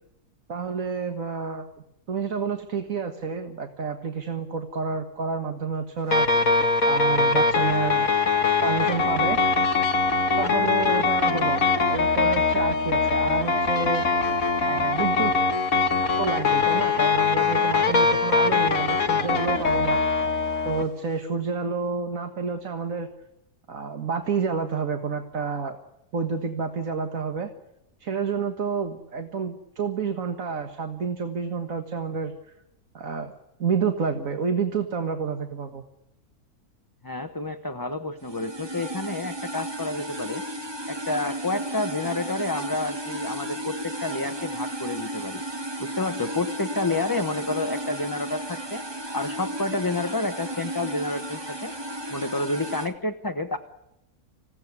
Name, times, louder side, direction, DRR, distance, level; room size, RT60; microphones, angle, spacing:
voice 1, 0.5-1.7 2.1-6.3 6.8-8.1 8.6-9.4 10.4-14.0 14.6-15.3 16.2-20.0 20.7-23.1 23.7-25.8 26.1-27.5 28.0-32.3 32.9-33.3 33.6-35.8, right 5 dB, 60° right, 6 dB, 1.9 m, -29 dB
sound 1, 6.1-20.8, left 4 dB, 60° left, 2.0 m, -22 dB
voice 2, 37.0-40.4 40.9-45.4 45.8-48.8 49.1-51.7 52.1-53.6, left 2 dB, 15° left, 7 dB, 0.9 m, -29 dB
sound 2, 38.2-52.9, right 1 dB, 15° right, 1.5 m, -34 dB
26.5 x 16.5 x 9.7 m, 0.87 s
omnidirectional pair, 1.7 m